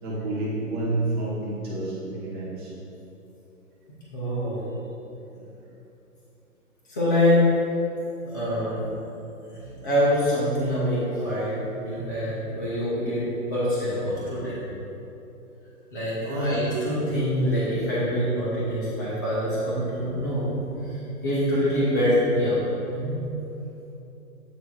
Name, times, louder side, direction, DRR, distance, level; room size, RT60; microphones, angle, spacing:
voice 1, 0.0-2.7 9.5-9.6 16.2-16.5, right 2 dB, 15° right, -8 dB, 1.0 m, -29 dB
voice 2, 4.1-4.6 6.9-7.4 8.2-8.8 9.8-14.6 15.9-20.5 21.2-22.6 22.9-23.2, equal, 15° left, -9 dB, 0.7 m, -25 dB
8.1 x 3.6 x 4.3 m, 2.9 s
hypercardioid pair, 165°, 45 cm